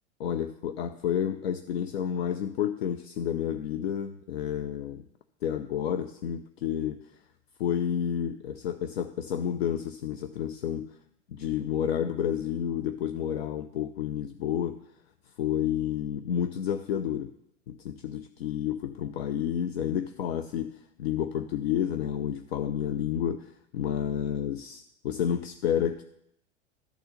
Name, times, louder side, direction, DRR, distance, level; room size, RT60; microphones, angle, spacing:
voice 1, 0.2-5.1 5.4-7.2 7.6-10.9 11.3-14.9 15.4-17.3 17.7-26.0, left 9 dB, 60° left, 9 dB, 0.6 m, -30 dB
12.5 x 4.3 x 6.5 m, 0.76 s
figure-of-eight pair, 85°, 36 cm